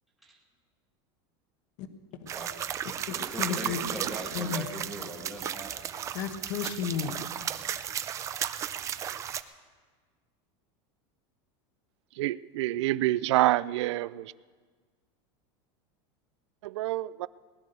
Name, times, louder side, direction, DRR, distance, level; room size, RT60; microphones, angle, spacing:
voice 1, 2.3-2.7 3.1-5.9, right 1 dB, ahead, 1.3 m, -40 dB
sound 1, 2.3-9.4, right 9 dB, 20° right, 0.4 m, -34 dB
voice 2, 3.1-3.8 4.3-4.6 6.1-7.2, left 8 dB, 50° left, 1.1 m, -33 dB
voice 3, 12.2-14.3 16.6-17.3, right 16 dB, 80° right, 0.4 m, -27 dB
19.0 x 10.5 x 6.6 m
supercardioid pair, 160°, 15 cm